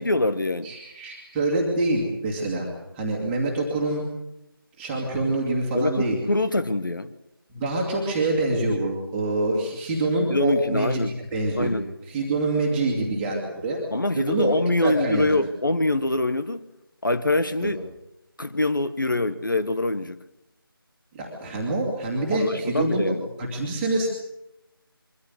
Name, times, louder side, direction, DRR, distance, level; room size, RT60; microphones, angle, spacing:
voice 1, 0.0-0.7 5.7-7.1 10.3-11.1 11.6-11.9 13.9-16.6 17.0-17.8 18.4-20.2 22.3-23.2, left 2 dB, 60° left, 1.2 m, -24 dB
voice 2, 0.6-2.7 2.9-4.0 4.8-6.2 7.5-11.8 12.1-13.8 14.2-14.5 14.8-15.3 17.6-17.7 21.1-23.0 23.4-24.1, right 2 dB, 5° right, 2.2 m, -25 dB
23.5 x 14.0 x 9.4 m
figure-of-eight pair, 165°, 12 cm